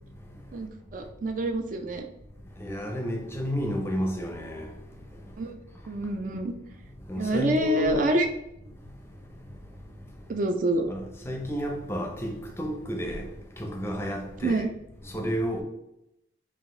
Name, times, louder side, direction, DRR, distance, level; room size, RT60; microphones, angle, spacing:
voice 1, 0.5-2.1 5.4-5.5 5.9-6.5 7.2-8.3 10.3-10.9 14.4-14.7, right 1 dB, 45° right, 0.4 m, -26 dB
voice 2, 2.6-4.7 7.1-8.0 11.3-12.3 12.6-13.2 13.6-14.6 15.1-15.6, equal, 15° left, 0.5 m, -31 dB
4.9 x 2.5 x 3.7 m
head